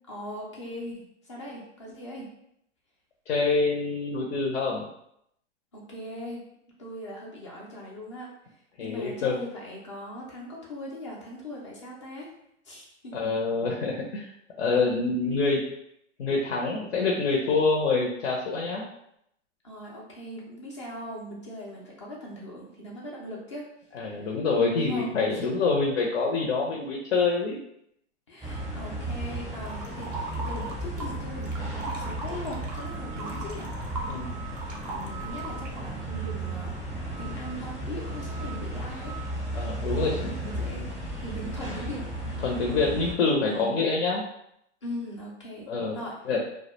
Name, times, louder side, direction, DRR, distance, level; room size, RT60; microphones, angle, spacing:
voice 1, 0.1-2.3 5.7-6.4 6.8-8.3 8.8-12.3 12.6-13.1 19.6-23.7 24.0-24.3 24.8-25.5 28.3-33.7 34.9-36.8 37.2-39.2 40.0-40.9 41.2-42.1 43.4-43.8 44.8-45.7 45.9-46.3, equal, 25° left, -3 dB, 0.3 m, -40 dB
voice 2, 3.3-4.8 8.8-9.3 13.1-14.3 14.6-15.6 16.2-18.8 23.9-27.6 34.1-34.3 39.5-40.3 42.4-44.2 45.7-46.0 46.2-46.4, left 4 dB, 70° left, -1 dB, 0.6 m, -26 dB
sound 1, 28.4-43.1, right 1 dB, ahead, 0.7 m, -34 dB
sound 2, 29.7-31.2 31.4-35.9, right 2 dB, 35° right, 0.4 m, -38 dB
2.2 x 2.1 x 2.9 m, 0.76 s
hypercardioid pair, 150°, 37 cm